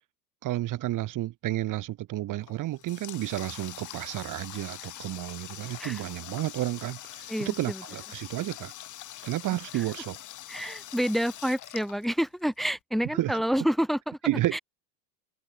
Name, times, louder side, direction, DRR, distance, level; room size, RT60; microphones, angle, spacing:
voice 1, 0.4-8.7 9.2-10.2 13.1-13.4 14.2-14.6, right 15 dB, 40° right, 2.5 m, -31 dB
Water tap faucet, 2.4-12.6, left 13 dB, 40° left, 4.6 m, -43 dB
voice 2, 7.3-7.8 9.7-9.9 10.5-14.2 14.5-14.6, equal, ahead, 2.1 m, -28 dB
supercardioid pair, 125°, 47 cm